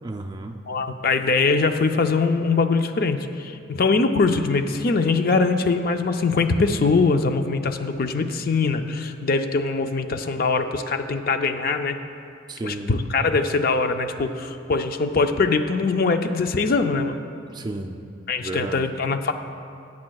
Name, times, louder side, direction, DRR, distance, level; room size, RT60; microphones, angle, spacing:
voice 1, 0.0-0.7 12.5-12.9 17.5-18.0 18.4-18.9, right 2 dB, 20° right, 4 dB, 0.4 m, -32 dB
voice 2, 0.7-12.0 12.6-17.1 18.3-19.3, left 4 dB, 45° left, 7 dB, 0.4 m, -22 dB
17.5 x 8.5 x 2.3 m, 2.5 s
head